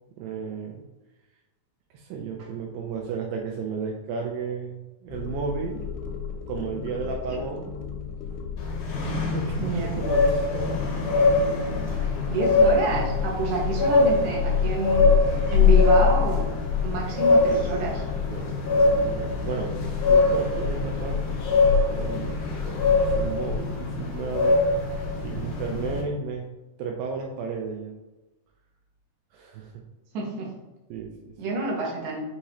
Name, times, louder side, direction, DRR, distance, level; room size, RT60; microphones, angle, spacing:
voice 1, 0.2-0.8 1.9-5.8 6.5-7.7 9.1-9.6 10.0-10.7 11.9-12.2 12.6-12.7 18.3-21.4 21.9-24.6 25.2-26.4 26.8-27.9 29.3-29.7 30.9-31.3, right 5 dB, 85° right, 1 dB, 2.3 m, -33 dB
sound 1, 5.1-23.6, left 8 dB, 85° left, 2.4 m, -28 dB
sound 2, 8.6-26.0, left 2 dB, 70° left, 1.7 m, -24 dB
voice 2, 9.6-10.0 12.3-15.1 15.5-16.4 16.8-18.0 30.1-30.5 31.4-32.2, right 3 dB, 65° right, -3 dB, 2.1 m, -28 dB
6.3 x 2.8 x 2.9 m, 1.0 s
omnidirectional pair, 4.2 m